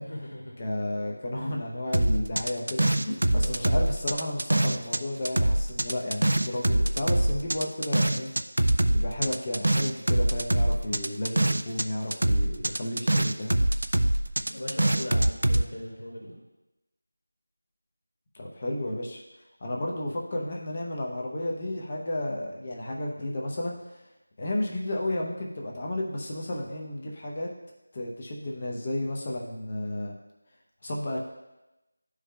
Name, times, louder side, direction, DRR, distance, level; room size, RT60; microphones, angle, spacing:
voice 1, 0.0-0.5 3.4-3.7 14.5-16.4, left 1 dB, 75° left, -3 dB, 1.8 m, -38 dB
voice 2, 0.6-8.3 8.9-13.6 18.3-19.2 19.6-24.0 24.4-27.5 27.9-30.2 30.8-31.2, left 1 dB, 30° left, -1 dB, 0.7 m, -32 dB
sound 1, 1.9-5.0 5.3-11.9 12.1-15.6, right 1 dB, 80° right, 0.4 m, -24 dB
11.5 x 4.8 x 2.2 m, 0.99 s
figure-of-eight pair, 175°, 0 cm